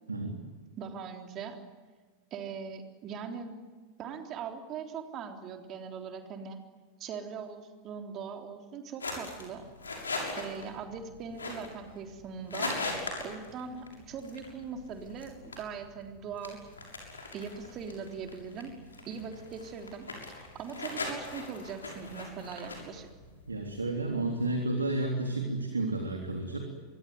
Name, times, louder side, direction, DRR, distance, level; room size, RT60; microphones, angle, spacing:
voice 1, 0.1-0.4 23.5-26.6, right 2 dB, 80° right, 4 dB, 3.4 m, -31 dB
voice 2, 0.8-1.6 2.3-3.6 4.0-6.6 7.0-9.7 10.4-12.8 13.2-16.6 17.3-18.7 19.1-20.1 20.4-23.1, right 6 dB, 35° right, 5 dB, 3.7 m, -41 dB
sound 1, 9.0-24.3, left 3 dB, 75° left, 6.7 m, -41 dB
26.0 x 23.0 x 9.5 m, 1.4 s
figure-of-eight pair, 90°, 0 cm